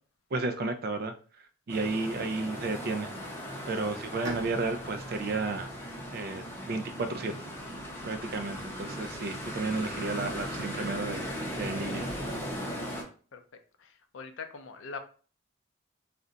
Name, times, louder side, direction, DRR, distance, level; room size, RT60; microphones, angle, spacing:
voice 1, 0.3-1.1 1.7-3.1 3.7-5.7 6.1-11.3 11.6-12.1, right 3 dB, 50° right, 8 dB, 0.4 m, -33 dB
sound 1, 1.7-13.0, equal, 10° left, 0.6 m, -38 dB
Bowed string instrument, 4.2-7.9, right 1 dB, 65° right, 0.8 m, -45 dB
sound 2, 7.5-12.7, equal, 45° left, 0.8 m, -56 dB
voice 2, 13.8-15.0, left 5 dB, 75° left, 7 dB, 0.5 m, -42 dB
2.5 x 2.2 x 3.8 m, 0.40 s
head